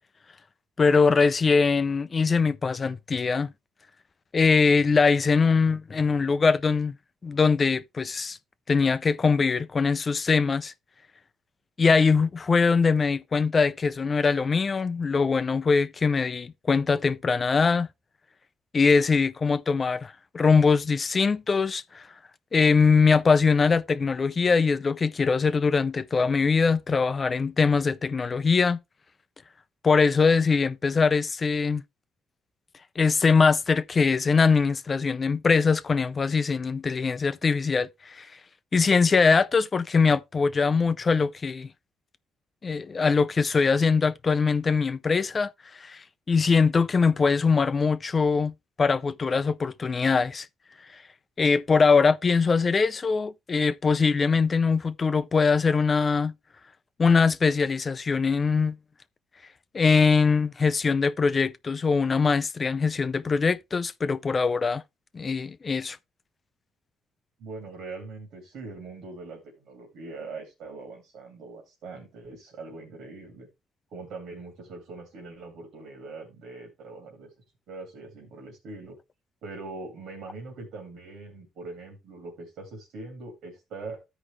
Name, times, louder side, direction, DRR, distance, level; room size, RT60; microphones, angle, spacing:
voice 1, 0.8-3.5 4.3-6.9 7.2-8.4 8.7-10.7 11.8-17.9 18.7-22.1 22.5-28.8 29.8-31.8 33.0-38.3 38.7-41.7 42.6-45.5 45.8-48.5 48.8-50.5 51.4-56.3 57.0-58.8 59.7-64.8 65.1-66.0, left 5 dB, 35° left, 0.5 m, -22 dB
voice 2, 67.4-73.5 73.9-77.3 77.7-79.0 79.4-84.0, right 3 dB, 80° right, 2.6 m, -42 dB
13.5 x 4.9 x 3.2 m
cardioid pair, 90°, 0 cm